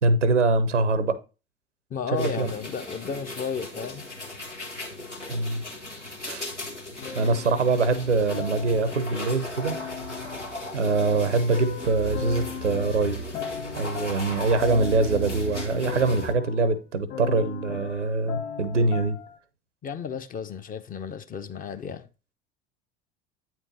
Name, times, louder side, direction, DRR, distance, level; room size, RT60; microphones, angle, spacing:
voice 1, 0.0-1.2 2.1-2.5 5.3-5.6 6.2-6.5 7.1-9.8 10.7-13.2 13.8-19.2, right 3 dB, 85° right, 0.9 m, -24 dB
voice 2, 1.9-4.0 19.8-22.1, left 6 dB, 25° left, 0.6 m, -33 dB
sound 1, 2.2-16.3, left 1 dB, 90° left, 1.2 m, -37 dB
sound 2, 7.0-9.2 9.6-19.4, left 7 dB, 45° left, 1.7 m, -38 dB
8.9 x 4.5 x 4.0 m
figure-of-eight pair, 70°, 35 cm